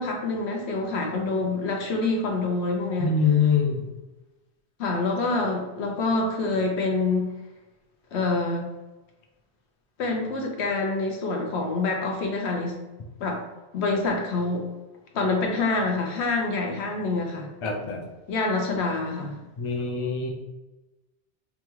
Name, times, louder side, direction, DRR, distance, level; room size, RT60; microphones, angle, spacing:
voice 1, 0.0-3.1 4.8-7.3 8.1-8.7 10.0-12.8 13.2-13.4 13.7-14.7 15.1-17.5 18.3-19.4, left 3 dB, 75° left, 1 dB, 1.0 m, -26 dB
voice 2, 3.0-3.8 17.6-18.0 19.6-20.3, left 6 dB, 40° left, 1 dB, 0.4 m, -24 dB
5.3 x 2.3 x 3.0 m, 1.1 s
omnidirectional pair, 1.2 m